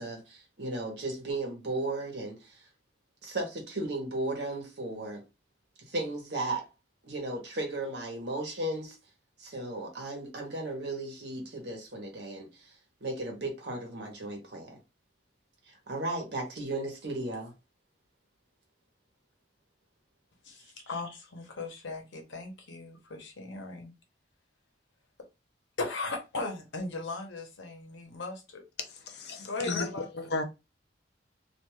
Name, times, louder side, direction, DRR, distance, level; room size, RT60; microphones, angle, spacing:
voice 1, 0.0-2.6 3.2-5.2 5.9-6.7 7.0-9.0 9.4-12.7 13.0-14.8 15.7-17.5, right 2 dB, 65° right, 1.0 m, -35 dB
voice 2, 20.4-23.9 25.8-28.6 29.4-30.1, left 3 dB, 85° left, 0.9 m, -38 dB
voice 3, 29.1-29.9 30.1-30.4, left 3 dB, 60° left, 0.5 m, -33 dB
2.5 x 2.3 x 3.0 m
head